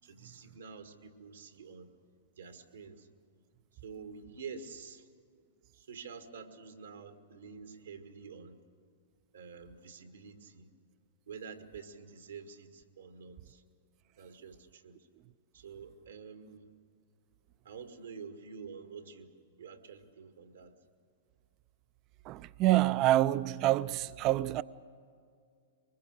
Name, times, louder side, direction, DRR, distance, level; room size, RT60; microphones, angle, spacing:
voice 1, 0.0-1.9 2.4-3.1 3.8-5.1 5.7-8.6 9.3-10.7 11.3-13.6 14.2-15.0 15.5-16.7 17.6-19.3 19.6-20.7, right 5 dB, 80° right, 1.9 m, -48 dB
voice 2, 22.3-24.6, right 15 dB, 40° right, 0.5 m, -27 dB
24.0 x 21.0 x 6.7 m
hypercardioid pair, 115°, 0 cm